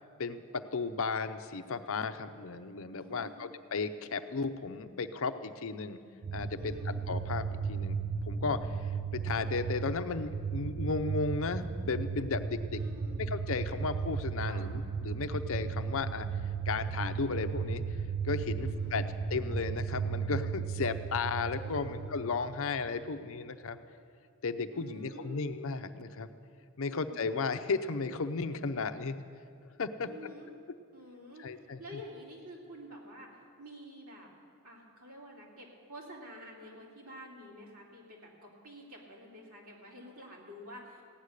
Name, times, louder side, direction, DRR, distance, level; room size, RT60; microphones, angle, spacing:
voice 1, 0.2-6.0 6.3-8.0 8.2-8.8 9.1-12.8 13.2-16.3 16.7-17.8 18.2-19.0 19.3-23.8 24.4-26.3 26.8-29.2 29.8-30.1 31.4-31.8, left 4 dB, 65° left, 10 dB, 0.6 m, -34 dB
voice 2, 3.0-3.5 6.6-7.0 12.7-13.2 14.5-14.7 18.6-19.0 21.6-22.0 24.7-25.5 26.8-27.3 30.0-30.5 30.9-31.5 31.8-33.3 33.6-34.3 34.6-41.0, equal, 70° right, -2 dB, 2.9 m, -49 dB
sound 1, 6.2-23.0, right 5 dB, 90° right, 0.6 m, -35 dB
16.0 x 9.8 x 6.5 m, 2.3 s
head